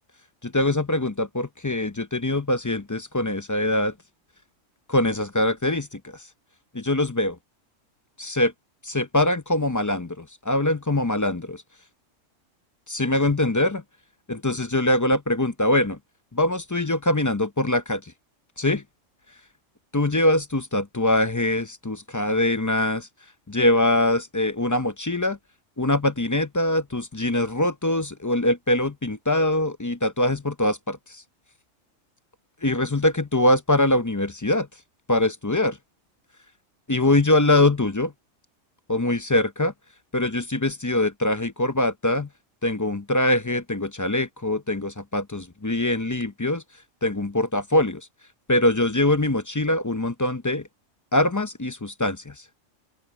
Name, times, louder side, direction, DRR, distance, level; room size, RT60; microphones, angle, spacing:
voice 1, 0.4-3.9 4.9-6.2 6.7-7.4 8.2-8.5 8.8-11.6 12.9-13.8 14.3-16.0 16.3-18.0 18.6-18.8 19.9-23.1 23.5-25.4 25.8-31.2 32.6-34.7 35.1-35.8 36.9-38.1 38.9-39.7 40.1-42.3 42.6-46.6 47.0-48.0 48.5-50.6 51.1-52.3, left 1 dB, 20° left, 0.5 m, -23 dB
open air
omnidirectional pair, 1.3 m